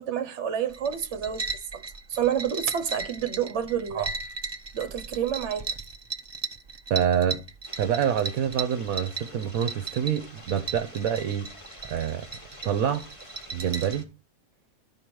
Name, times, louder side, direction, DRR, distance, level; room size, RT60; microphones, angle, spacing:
voice 1, 0.0-1.8 2.1-4.1 4.7-5.7, right 9 dB, 55° right, 1.3 m, -29 dB
sound 1, 0.7-14.0, right 4 dB, 35° right, 0.4 m, -37 dB
voice 2, 6.9-7.4 7.8-11.5 11.9-12.2 12.6-13.1 13.5-14.0, right 9 dB, 75° right, 1.2 m, -26 dB
sound 2, 7.6-14.0, left 1 dB, 20° left, 1.9 m, -48 dB
12.5 x 4.9 x 6.1 m
omnidirectional pair, 1.6 m